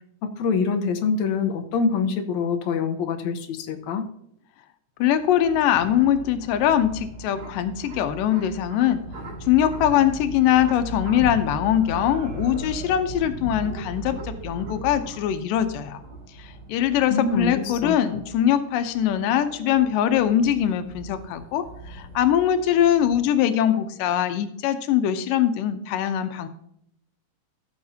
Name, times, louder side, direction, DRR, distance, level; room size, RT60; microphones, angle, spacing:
voice 1, 0.2-4.1 17.1-18.0, left 5 dB, 70° left, 6 dB, 2.0 m, -25 dB
voice 2, 5.0-9.0 9.5-16.0 16.4-26.5, left 10 dB, 90° left, 9 dB, 2.4 m, -22 dB
sound 1, 5.0-23.2, right 2 dB, 55° right, 3.4 m, -38 dB
14.5 x 7.0 x 2.7 m, 0.72 s
omnidirectional pair, 3.8 m